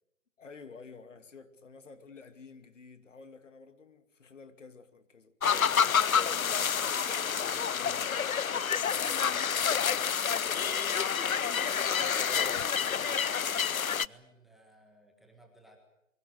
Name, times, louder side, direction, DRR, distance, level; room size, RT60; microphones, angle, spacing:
voice 1, 0.4-5.8 6.4-6.8 7.7-8.1 8.9-10.2, left 4 dB, 65° left, 2.7 m, -51 dB
sound 1, 5.4-14.1, left 7 dB, 85° left, 0.8 m, -28 dB
voice 2, 7.3-8.0 12.0-15.8, right 1 dB, ahead, 1.5 m, -58 dB
26.5 x 23.5 x 6.6 m
figure-of-eight pair, 155°, 41 cm